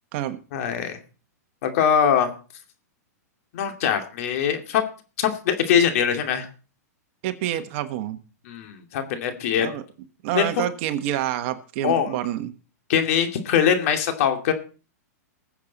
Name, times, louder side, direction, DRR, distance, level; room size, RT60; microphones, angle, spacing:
voice 1, 0.5-1.0 1.6-2.3 3.5-4.8 5.2-6.5 8.5-9.7 10.3-10.6 11.8-12.2 12.9-14.5, left 8 dB, 55° left, 6 dB, 2.6 m, -22 dB
voice 2, 7.2-8.2 9.6-9.8 10.2-12.6, right 12 dB, 50° right, 10 dB, 1.4 m, -27 dB
20.5 x 7.5 x 4.1 m, 0.37 s
hypercardioid pair, 140°, 9 cm